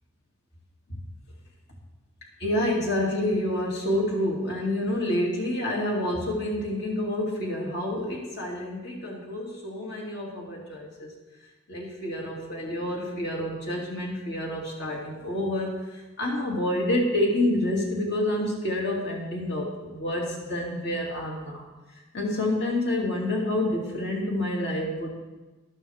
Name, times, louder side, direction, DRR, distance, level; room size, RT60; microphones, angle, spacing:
voice 1, 2.4-11.1 11.7-21.6 22.1-25.1, left 1 dB, 55° left, -2 dB, 2.6 m, -28 dB
13.0 x 12.0 x 3.6 m, 1.2 s
head